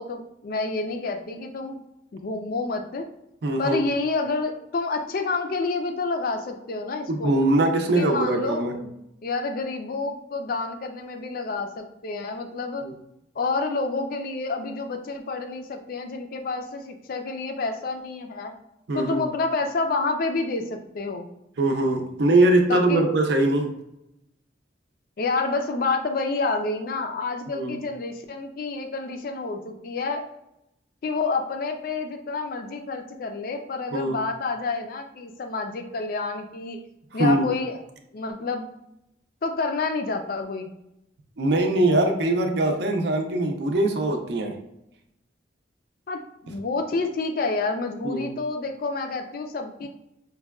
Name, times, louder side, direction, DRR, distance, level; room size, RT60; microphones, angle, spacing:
voice 1, 0.0-1.8 2.1-3.1 3.6-7.3 7.9-8.9 9.2-12.9 13.4-18.5 18.9-21.3 22.7-23.2 25.2-30.3 31.0-36.8 37.1-37.8 38.1-38.7 39.4-40.7 46.1-49.9, left 3 dB, 50° left, 5 dB, 0.4 m, -29 dB
voice 2, 3.4-3.8 7.1-8.8 12.8-12.9 18.9-19.3 21.6-23.7 27.5-27.8 33.9-34.2 37.2-37.5 41.4-44.6 48.0-48.3, right 2 dB, 60° right, 4 dB, 0.5 m, -22 dB
5.2 x 2.2 x 2.3 m, 0.85 s
head